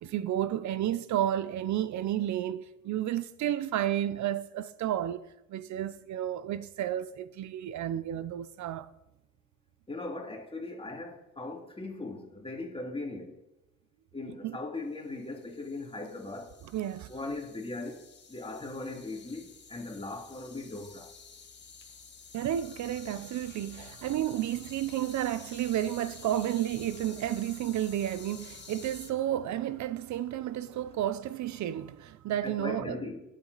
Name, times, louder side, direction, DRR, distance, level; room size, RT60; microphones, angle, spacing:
voice 1, 0.0-8.9 14.4-14.6 16.7-17.1 22.3-33.1, right 11 dB, 70° right, 0.6 m, -32 dB
voice 2, 9.9-13.4 14.1-16.6 17.1-18.0 18.3-21.1 23.8-23.9 32.4-33.2, left 2 dB, 20° left, 2.4 m, -39 dB
sound 1, 15.1-29.1, left 5 dB, 35° left, 1.6 m, -51 dB
17.5 x 7.5 x 4.0 m
cardioid pair, 90°, 30 cm